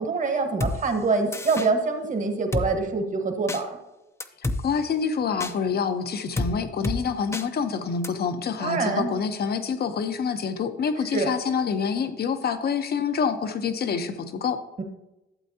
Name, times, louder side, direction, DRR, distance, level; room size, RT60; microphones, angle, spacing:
voice 1, 0.0-3.8 8.6-9.1 11.1-11.3 14.8-14.9, right 4 dB, 40° right, 5 dB, 1.5 m, -25 dB
Drum kit, 0.6-0.8 1.3-1.7 2.5-2.7 3.5-3.6 4.2-4.6 5.4-5.5 6.4-6.5 6.8-7.0 7.3-7.5 8.0-8.1, left 2 dB, 15° left, 0.6 m, -27 dB
voice 2, 4.6-14.6, left 6 dB, 50° left, 9 dB, 0.9 m, -27 dB
12.0 x 7.5 x 2.8 m, 0.96 s
cardioid pair, 90°, 20 cm